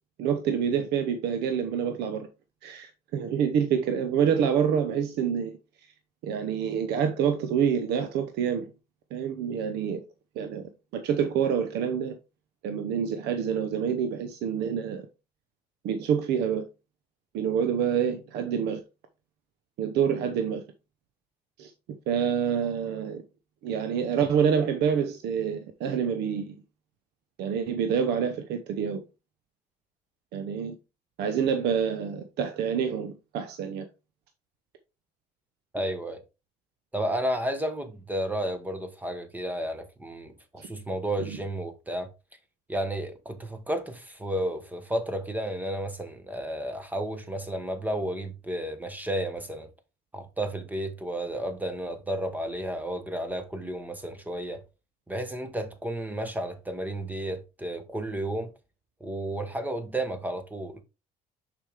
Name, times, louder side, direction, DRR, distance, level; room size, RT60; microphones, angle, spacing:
voice 1, 0.2-2.3 2.6-5.6 6.2-8.7 9.1-10.0 10.4-12.2 12.6-15.1 15.8-16.7 17.3-18.8 19.8-20.6 21.6-21.7 22.1-23.2 23.6-26.6 27.4-29.0 30.3-30.7 31.2-33.8 41.2-41.4, right 7 dB, 80° right, 0.8 m, -27 dB
voice 2, 35.7-36.2 36.9-42.1 42.7-49.7 50.1-54.6 55.1-58.5 59.0-60.8, right 1 dB, 10° right, 1.2 m, -32 dB
6.6 x 5.0 x 3.5 m
cardioid pair, 110°, 17 cm